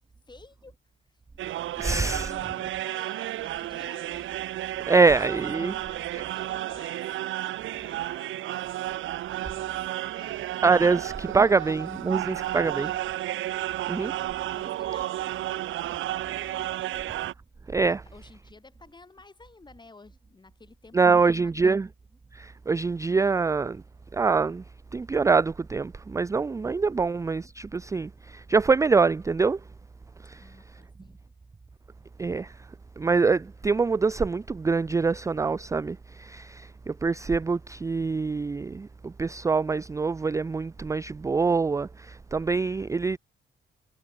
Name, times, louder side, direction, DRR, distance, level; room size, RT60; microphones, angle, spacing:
voice 1, 0.3-0.8 1.1-1.2 2.0-4.3 5.6-8.6 9.4-11.0 11.6-11.8 12.2-13.0 13.6-13.8 14.5-15.7 16.0-17.0 18.1-21.8 27.0-27.1 30.4-31.2, left 3 dB, 20° left, 6.1 m, -52 dB
sound 1, 1.4-17.3, right 14 dB, 80° right, 1.5 m, -32 dB
voice 2, 1.8-2.3 4.9-5.7 10.6-12.9 13.9-14.1 17.7-18.0 20.9-21.9 22.3-23.8 24.1-24.6 24.9-29.6 30.2-30.4 32.2-32.5 33.0-43.2, right 4 dB, 15° right, 0.4 m, -24 dB
cardioid pair, 90°, 20 cm